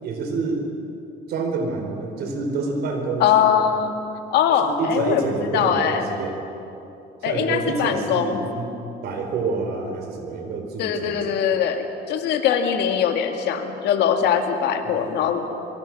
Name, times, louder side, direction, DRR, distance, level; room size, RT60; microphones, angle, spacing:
voice 1, 0.0-0.7 1.3-3.5 4.6-6.4 7.2-11.6 14.8-15.1, right 3 dB, 75° right, 4 dB, 4.5 m, -28 dB
voice 2, 3.2-3.9 4.3-6.0 7.2-8.4 10.8-15.4, left 8 dB, 80° left, 5 dB, 2.2 m, -21 dB
24.5 x 23.5 x 6.2 m, 2.8 s
cardioid pair, 110°, 17 cm